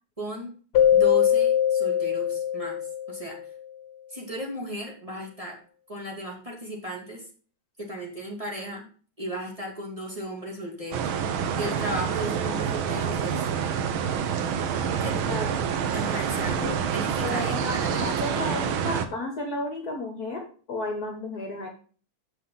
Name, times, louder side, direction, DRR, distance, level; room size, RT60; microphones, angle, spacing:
voice 1, 0.2-0.5 0.9-2.8 3.1-3.4 4.1-5.6 5.9-7.2 7.8-8.9 9.2-11.1 11.6-13.5 15.0-15.3 15.9-18.4, equal, 15° right, -1 dB, 2.8 m, -35 dB
Keyboard (musical), 0.7-3.5, left 9 dB, 80° left, 1.7 m, -22 dB
sound 1, 10.9-19.1, right 7 dB, 70° right, 1.7 m, -27 dB
voice 2, 15.0-15.5 16.6-16.8 17.2-21.7, left 2 dB, 50° left, 3 dB, 1.8 m, -33 dB
8.0 x 5.8 x 5.6 m, 0.40 s
omnidirectional pair, 2.4 m